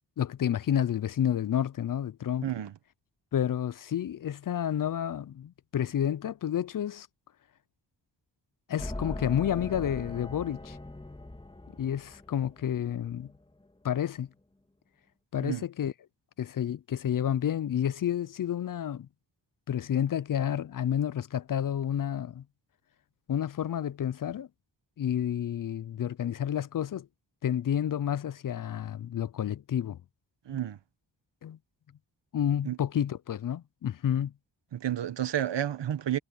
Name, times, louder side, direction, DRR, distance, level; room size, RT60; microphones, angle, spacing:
voice 1, 0.2-2.5 3.3-7.1 8.7-10.8 11.7-13.3 13.8-14.3 15.3-15.9 16.4-19.1 19.7-22.4 23.3-24.5 25.0-27.1 27.4-30.0 31.4-31.6 32.3-34.3, left 10 dB, 50° left, 0.4 m, -30 dB
sound 1, 8.8-13.5, left 1 dB, 10° left, 2.4 m, -41 dB
voice 2, 30.5-30.8 32.6-32.8 34.7-36.2, right 11 dB, 80° right, 1.1 m, -30 dB
wide cardioid pair, 140°, 42 cm